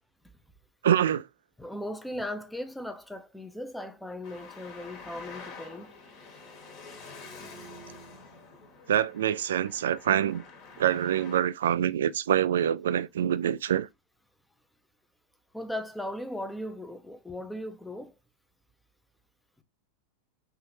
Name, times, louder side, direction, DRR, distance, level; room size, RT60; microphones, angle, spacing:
voice 1, 0.8-1.3 8.9-10.4 10.8-13.9, right 10 dB, 70° right, 0.3 m, -25 dB
voice 2, 1.6-5.9 15.5-18.1 19.6-19.7, left 1 dB, 5° left, 0.7 m, -37 dB
Traffic noise roadway noise, 4.2-11.4, left 4 dB, 45° left, 1.3 m, -47 dB
5.7 x 2.8 x 3.0 m
figure-of-eight pair, 90°, 0 cm